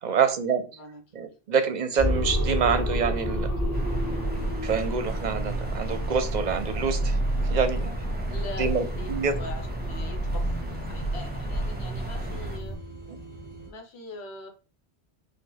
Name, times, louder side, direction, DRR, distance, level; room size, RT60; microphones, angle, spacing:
voice 1, 0.0-0.7 1.1-3.5 4.6-7.2 7.5-7.9 8.6-9.4, right 6 dB, 50° right, 0.7 m, -26 dB
voice 2, 0.7-1.2 8.3-9.1 9.3-10.6 10.9-12.8 13.7-14.5, left 2 dB, 80° left, 1.2 m, -42 dB
sound 1, 2.0-12.8, equal, 35° left, 2.1 m, -29 dB
sound 2, 3.7-12.6, right 1 dB, 10° right, 0.8 m, -39 dB
sound 3, 7.1-13.7, right 1 dB, 55° left, 1.8 m, -45 dB
4.9 x 2.4 x 3.9 m
omnidirectional pair, 1.1 m